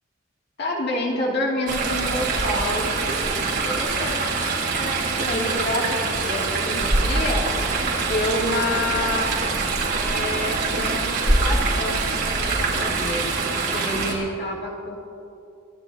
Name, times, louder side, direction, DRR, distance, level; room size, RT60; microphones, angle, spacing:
voice 1, 0.6-2.9 3.6-7.5 8.0-9.4 10.0-12.0 12.4-15.0, left 1 dB, 55° left, -3 dB, 2.4 m, -28 dB
Chatter / Stream, 1.7-14.1, right 3 dB, 60° right, 3.1 m, -24 dB
28.5 x 15.0 x 2.7 m, 2.7 s
head